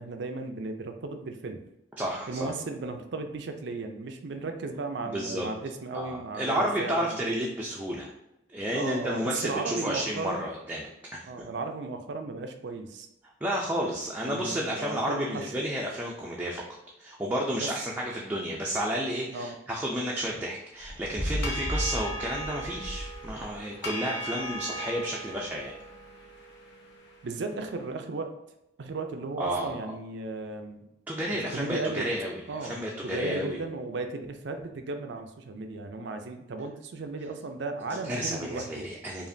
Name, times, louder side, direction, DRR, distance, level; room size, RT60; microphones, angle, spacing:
voice 1, 0.0-1.6 2.3-7.4 8.7-10.5 11.3-13.1 14.2-15.5 17.5-17.7 19.3-19.6 27.2-28.4 28.8-30.8 31.5-32.1 32.5-38.8, right 3 dB, 65° right, 6 dB, 0.5 m, -35 dB
voice 2, 2.0-2.5 5.0-5.5 5.9-8.1 8.5-11.2 13.4-16.6 17.0-25.7 29.4-29.7 31.1-33.6 38.0-39.3, equal, 10° right, -3 dB, 0.5 m, -31 dB
sound 1, 20.8-23.6, equal, 45° left, 1.0 m, -34 dB
sound 2, 21.2-27.6, equal, 65° left, 0.9 m, -39 dB
5.0 x 2.5 x 2.6 m, 0.87 s
head